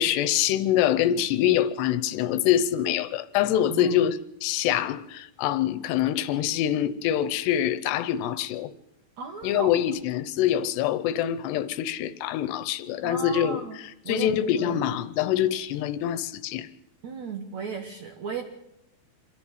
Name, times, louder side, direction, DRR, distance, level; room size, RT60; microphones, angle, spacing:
voice 1, 0.0-8.7 9.4-13.6 14.1-16.7, left 11 dB, 80° left, 2.9 m, -25 dB
voice 2, 3.7-4.0 9.2-9.7 13.0-13.8 14.0-14.8 17.0-18.4, right 5 dB, 65° right, 1.8 m, -35 dB
26.0 x 13.5 x 8.0 m
omnidirectional pair, 4.9 m